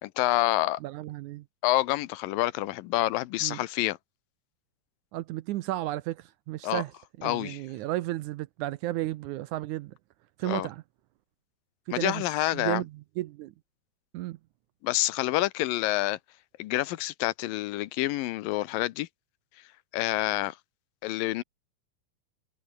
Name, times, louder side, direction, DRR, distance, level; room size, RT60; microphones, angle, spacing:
voice 1, 0.0-0.8 1.6-4.0 6.6-6.8 7.2-7.6 10.4-10.7 11.9-12.8 14.8-16.2 16.6-19.1 19.9-20.6 21.0-21.4, left 17 dB, 85° left, 2.5 m, -27 dB
voice 2, 0.8-1.5 3.4-3.6 5.1-6.9 7.2-9.9 10.4-10.8 11.9-12.3 12.5-13.5 14.1-14.4, right 16 dB, 75° right, 1.9 m, -33 dB
omnidirectional pair, 4.0 m